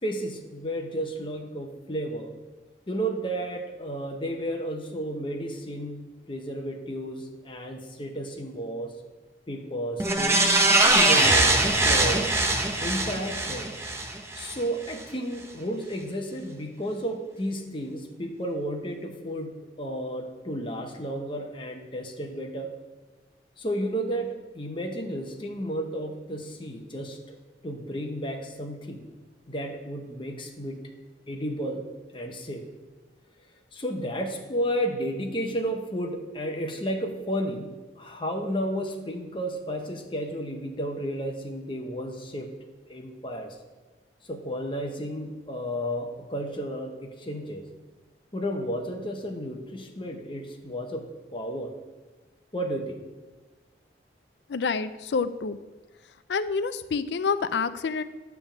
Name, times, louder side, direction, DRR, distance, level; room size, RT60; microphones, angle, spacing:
voice 1, 0.0-2.3 2.9-8.9 9.5-10.4 10.8-12.3 12.8-13.7 14.3-22.7 23.6-29.0 29.5-30.8 31.3-31.9 32.1-32.6 33.7-42.5 42.9-43.6 44.3-47.6 48.3-51.0 51.3-51.7 52.5-53.0, equal, 30° left, 3 dB, 0.9 m, -32 dB
sound 1, 10.0-14.5 14.9-15.0, right 2 dB, 15° right, 0.7 m, -22 dB
voice 2, 54.5-55.6 56.3-58.0, left 5 dB, 70° left, 13 dB, 0.4 m, -27 dB
9.8 x 3.5 x 7.1 m, 1.2 s
head